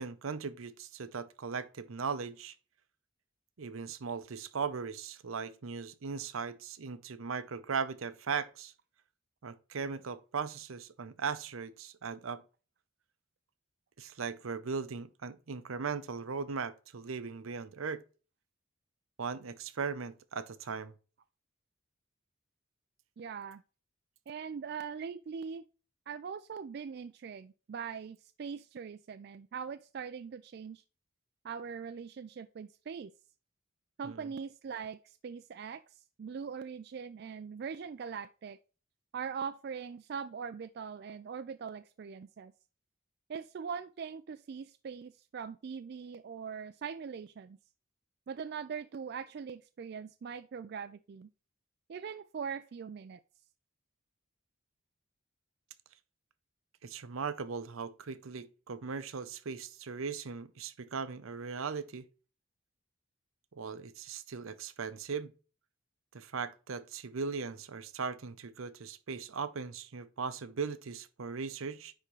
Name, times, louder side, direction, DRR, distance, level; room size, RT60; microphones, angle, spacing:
voice 1, 0.0-2.6 3.6-8.7 9.4-12.4 14.0-18.0 19.2-20.9 34.0-34.3 56.8-62.1 63.5-65.3 66.1-71.9, right 5 dB, 80° right, 0.7 m, -38 dB
voice 2, 23.2-23.6 24.3-25.6 26.1-30.8 31.4-33.1 34.0-38.6 39.1-42.5 43.3-47.6 48.3-51.3 51.9-53.2, right 6 dB, 50° right, 0.3 m, -41 dB
9.9 x 3.6 x 3.1 m
head